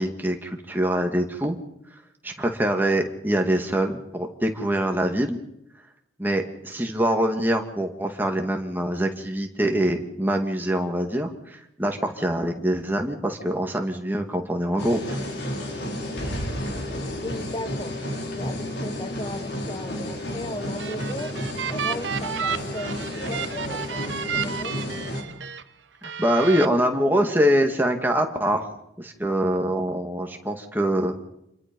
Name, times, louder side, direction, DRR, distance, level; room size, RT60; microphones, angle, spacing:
voice 1, 0.0-1.6 2.2-5.4 6.2-15.2 26.0-28.7 29.0-31.1, right 1 dB, 10° right, 3 dB, 2.2 m, -24 dB
sound 1, 14.8-25.2, left 1 dB, 70° left, 4.4 m, -31 dB
voice 2, 17.2-21.3 21.7-25.0, left 1 dB, 25° left, 10 dB, 0.9 m, -37 dB
sound 2, 20.6-25.6 26.0-26.7, right 7 dB, 85° right, 1.0 m, -32 dB
28.0 x 22.0 x 5.4 m, 0.82 s
head